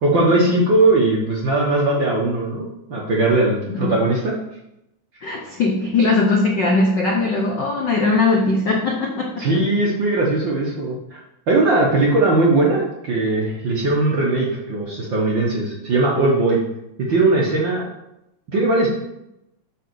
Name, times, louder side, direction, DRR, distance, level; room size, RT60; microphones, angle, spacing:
voice 1, 0.0-4.4 9.4-11.2 11.5-16.6 17.1-17.8 18.5-18.9, right 2 dB, 55° right, -3 dB, 1.5 m, -19 dB
voice 2, 5.2-9.5, left 3 dB, 90° left, 0 dB, 0.9 m, -20 dB
7.9 x 4.3 x 6.8 m, 0.86 s
omnidirectional pair, 3.4 m